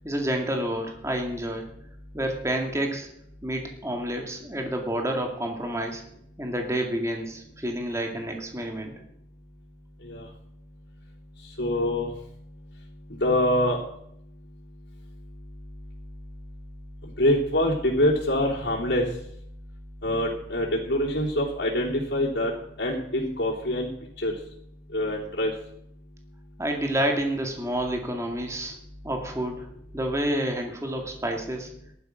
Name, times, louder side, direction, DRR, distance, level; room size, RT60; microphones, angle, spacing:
voice 1, 0.0-1.7 2.1-3.1 3.4-6.0 6.4-8.9 26.6-28.7 29.0-29.7 29.9-31.7, right 1 dB, 15° right, 3 dB, 2.2 m, -29 dB
voice 2, 11.6-12.1 13.1-13.8 17.2-19.0 20.0-22.5 22.8-23.9 24.2-24.3 24.9-25.5, left 1 dB, 65° left, -6 dB, 3.4 m, -24 dB
15.0 x 12.0 x 6.3 m, 0.72 s
head